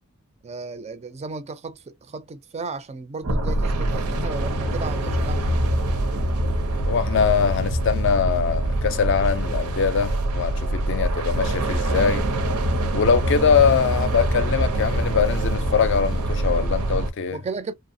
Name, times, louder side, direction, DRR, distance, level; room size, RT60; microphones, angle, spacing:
voice 1, 0.4-5.6 17.3-17.7, right 4 dB, 30° right, 0.4 m, -34 dB
sound 1, 3.2-17.1, right 1 dB, 75° right, 0.6 m, -24 dB
voice 2, 6.9-12.2 12.9-17.4, left 6 dB, 55° left, 0.5 m, -22 dB
2.8 x 2.0 x 2.5 m
head